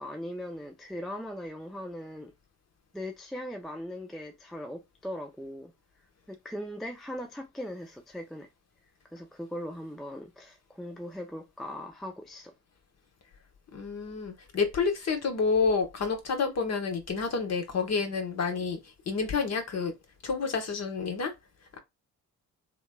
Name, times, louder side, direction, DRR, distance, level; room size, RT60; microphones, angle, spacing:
voice 1, 0.0-2.3 2.9-5.7 6.3-8.5 9.1-12.5, equal, ahead, 0.4 m, -39 dB
voice 2, 13.7-18.8 19.1-19.9 20.2-21.3, left 5 dB, 35° left, 0.9 m, -29 dB
3.0 x 2.2 x 2.2 m
hypercardioid pair, 45°, 43 cm